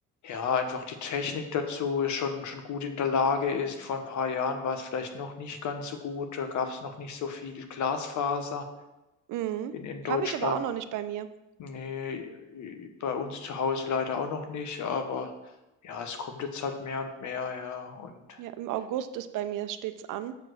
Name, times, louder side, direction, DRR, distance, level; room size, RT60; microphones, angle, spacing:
voice 1, 0.2-8.7 9.7-10.6 11.6-15.3 15.8-18.4, left 5 dB, 75° left, 6 dB, 1.2 m, -32 dB
voice 2, 9.3-9.7 10.0-11.3 18.4-20.4, right 11 dB, 90° right, 11 dB, 0.6 m, -32 dB
7.1 x 4.8 x 6.3 m, 0.96 s
cardioid pair, 90°, 30 cm